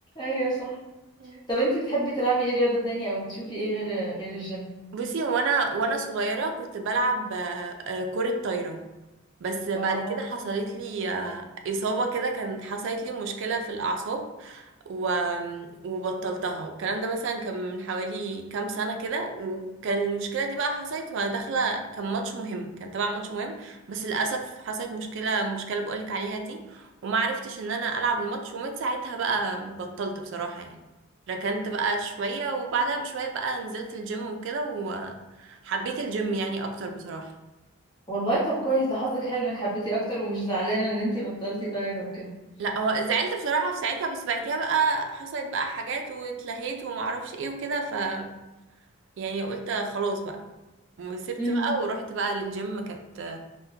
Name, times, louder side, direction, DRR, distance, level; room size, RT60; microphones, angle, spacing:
voice 1, 0.2-0.7 1.5-4.7 9.7-10.1 38.1-42.3 51.4-51.7, right 1 dB, 20° left, -7 dB, 1.0 m, -27 dB
voice 2, 4.9-8.8 9.4-30.8 31.3-37.3 42.6-48.3 49.2-50.5 51.0-53.4, right 3 dB, 60° right, 4 dB, 0.3 m, -29 dB
3.5 x 2.1 x 2.7 m, 1.1 s
head